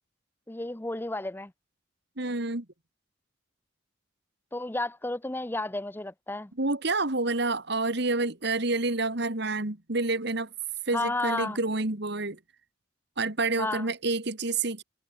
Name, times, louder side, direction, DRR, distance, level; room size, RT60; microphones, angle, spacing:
voice 1, 0.5-1.5 4.5-6.5 10.9-11.6 13.6-13.9, left 2 dB, 10° left, 0.6 m, -32 dB
voice 2, 2.2-2.7 6.6-10.5 10.9-12.4 13.2-14.8, right 3 dB, 55° right, 2.1 m, -28 dB
head